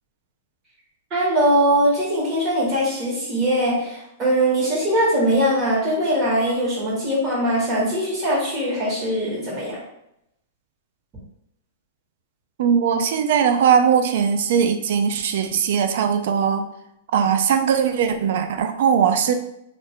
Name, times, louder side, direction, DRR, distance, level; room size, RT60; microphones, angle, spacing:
voice 1, 1.1-9.8, right 1 dB, 25° right, -5 dB, 1.4 m, -21 dB
voice 2, 12.6-16.7 17.1-19.3, right 7 dB, 65° right, 8 dB, 0.3 m, -19 dB
2.5 x 2.2 x 3.5 m, 0.81 s
hypercardioid pair, 140°, 0 cm